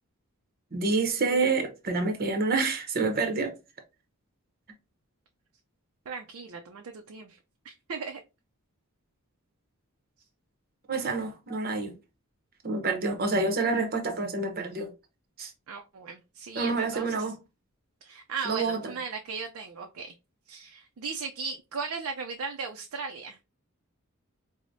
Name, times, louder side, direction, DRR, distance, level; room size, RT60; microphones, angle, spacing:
voice 1, 0.7-3.5 10.9-11.9 12.6-14.9 15.4-15.5 16.5-17.4 18.4-18.9, right 3 dB, 45° right, 0.8 m, -28 dB
voice 2, 6.1-7.4 7.6-8.2 15.7-17.2 18.0-20.1 20.5-23.4, right 5 dB, 70° right, 0.4 m, -37 dB
4.8 x 2.1 x 2.6 m
head